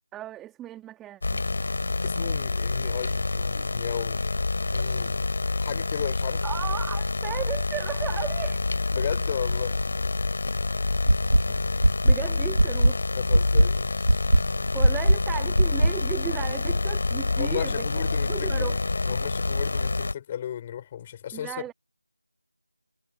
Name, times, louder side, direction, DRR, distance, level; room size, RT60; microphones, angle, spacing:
voice 1, 0.1-1.4 6.4-8.6 12.0-13.0 14.7-17.9 18.3-18.8 21.3-21.7, right 13 dB, 5° right, 3.2 m, -35 dB
sound 1, 1.2-20.1, left 3 dB, 45° left, 7.3 m, -27 dB
voice 2, 2.0-4.2 4.7-5.2 5.6-6.4 8.9-9.8 13.1-14.2 17.4-18.7 19.1-21.5, left 10 dB, 15° left, 4.9 m, -35 dB
sound 2, 11.1-11.4 11.8-12.1 12.6-12.9 13.3-13.7 14.1-14.4 14.8-15.2 15.6-15.9, right 1 dB, 90° right, 1.7 m, -17 dB
figure-of-eight pair, 165°, 0 cm